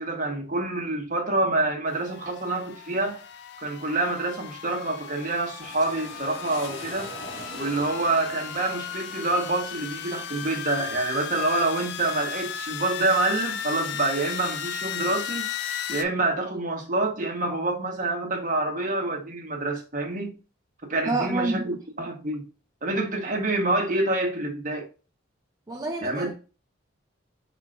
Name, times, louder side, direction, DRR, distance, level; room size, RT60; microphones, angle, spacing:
voice 1, 0.0-3.2 3.6-7.1 7.5-15.5 15.9-20.4 20.9-22.4 22.8-24.9 26.0-26.3, right 2 dB, 40° right, 1.1 m, -27 dB
sound 1, 1.9-16.0, left 9 dB, 55° left, 0.4 m, -36 dB
sound 2, 5.6-13.2 13.7-14.5, left 1 dB, 75° left, 1.5 m, -44 dB
voice 2, 21.0-21.7 25.7-26.3, right 2 dB, 15° right, 0.4 m, -28 dB
4.7 x 4.3 x 2.4 m
head